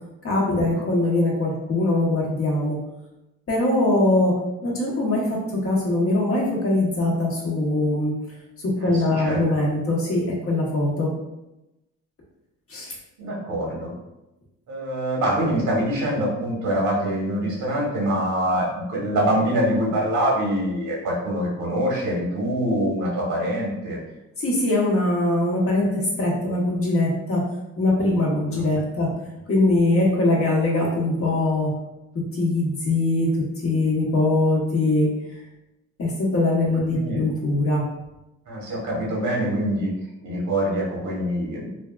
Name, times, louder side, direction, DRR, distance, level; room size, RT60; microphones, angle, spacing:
voice 1, 0.2-2.8 3.5-4.3 4.6-8.1 8.8-11.1 12.7-12.9 24.4-27.4 27.8-29.1 29.5-31.7 32.3-33.3 33.6-35.1 36.0-37.8, left 2 dB, 50° left, -3 dB, 1.1 m, -22 dB
voice 2, 8.8-9.6 13.2-13.9 14.7-24.0 28.5-28.6 29.0-29.1 37.0-37.2 38.5-39.9 40.2-41.7, right 1 dB, 75° right, -4 dB, 1.3 m, -25 dB
3.3 x 2.3 x 2.3 m, 0.93 s
cardioid pair, 90°, 30 cm